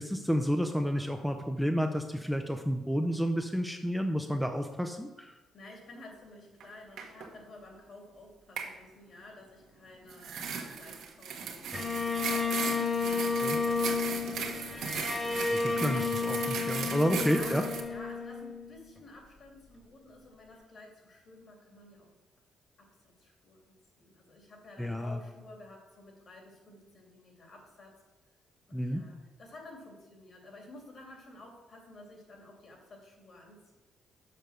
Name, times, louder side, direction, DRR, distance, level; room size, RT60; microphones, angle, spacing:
voice 1, 0.0-5.4 13.4-13.6 15.5-17.6 24.8-25.2 28.7-29.0, equal, ahead, 5 dB, 0.6 m, -30 dB
voice 2, 5.5-14.7 15.7-15.9 17.1-22.1 22.8-28.0 28.7-33.7, left 2 dB, 50° left, 1 dB, 2.7 m, -52 dB
sound 1, 6.6-6.7 7.0-7.3 8.6-8.7 10.1-17.8, right 6 dB, 75° right, 1.2 m, -37 dB
Bowed string instrument, 11.7-19.0, left 4 dB, 25° left, 1.7 m, -32 dB
6.8 x 5.2 x 6.3 m, 1.1 s
cardioid pair, 90°, 0 cm